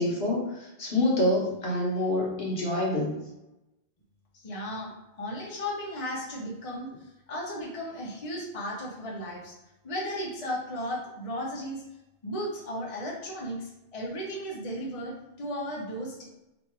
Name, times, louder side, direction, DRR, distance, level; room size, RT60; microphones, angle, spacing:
voice 1, 0.0-3.1, left 1 dB, 60° left, -3 dB, 1.2 m, -26 dB
voice 2, 4.4-9.6 9.8-11.8 12.2-16.2, equal, 35° left, -4 dB, 0.8 m, -35 dB
3.1 x 2.6 x 4.4 m, 0.94 s
omnidirectional pair, 1.1 m